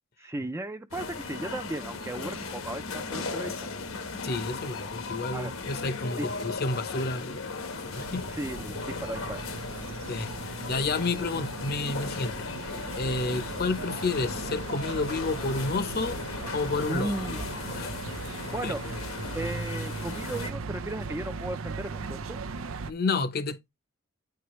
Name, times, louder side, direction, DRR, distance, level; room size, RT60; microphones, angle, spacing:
voice 1, 0.2-3.7 5.3-5.5 6.1-6.3 8.3-9.4 16.9-17.4 18.5-18.8 19.3-22.4, right 1 dB, 15° right, 0.4 m, -35 dB
sound 1, 0.9-20.5, left 4 dB, 80° left, 1.2 m, -37 dB
voice 2, 4.2-8.3 10.1-10.3 10.7-16.2 16.5-17.1 17.7-18.0 18.6-18.7 22.9-23.7, left 3 dB, 50° left, 0.8 m, -30 dB
sound 2, 7.9-22.9, right 4 dB, 90° right, 0.6 m, -38 dB
9.2 x 4.7 x 3.0 m
head